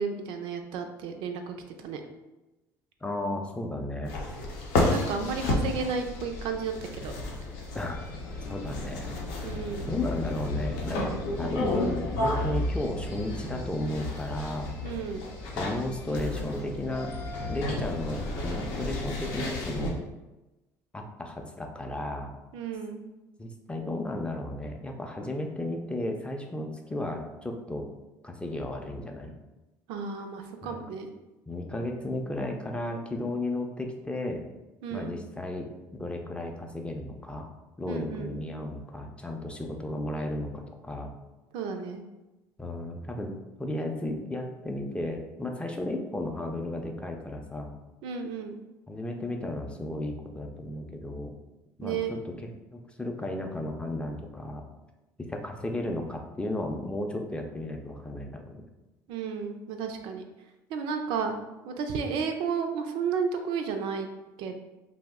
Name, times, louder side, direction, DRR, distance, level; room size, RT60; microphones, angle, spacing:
voice 1, 0.0-2.0 4.9-7.1 9.4-9.9 14.8-15.2 22.5-23.0 29.9-31.1 34.8-35.2 37.9-38.4 41.5-42.0 48.0-48.6 51.8-52.1 59.1-60.2 60.7-61.4 61.7-64.1 64.4-64.6, right 5 dB, 70° right, 5 dB, 0.4 m, -32 dB
voice 2, 3.0-4.1 7.7-8.0 8.5-9.1 9.9-14.7 15.5-17.1 17.5-20.0 20.9-22.3 23.4-27.9 28.2-29.3 30.6-30.8 31.5-34.4 34.9-35.7 36.0-37.5 37.8-41.1 42.6-43.3 43.6-47.7 48.9-51.3 51.8-52.0 52.2-52.3 52.7-54.6 55.3-58.7, left 1 dB, 10° left, 3 dB, 0.4 m, -34 dB
sound 1, 4.0-19.9, left 2 dB, 80° left, 0.6 m, -32 dB
2.5 x 2.0 x 3.5 m, 1.1 s
supercardioid pair, 75°, 9 cm